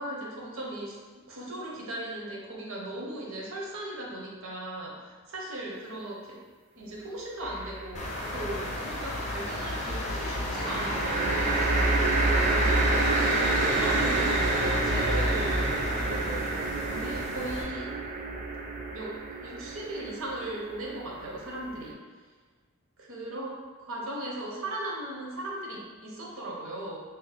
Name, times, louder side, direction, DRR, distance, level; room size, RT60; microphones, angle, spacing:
voice 1, 0.0-6.4 6.7-11.7 12.4-18.0 18.9-22.0 23.0-27.0, right 1 dB, 65° right, -3 dB, 0.7 m, -38 dB
sound 1, 7.4-8.1 10.5-21.9, right 2 dB, 35° right, 0.3 m, -28 dB
sound 2, 7.9-17.6, left 1 dB, 30° left, 0.5 m, -32 dB
2.6 x 2.0 x 4.0 m, 1.4 s
head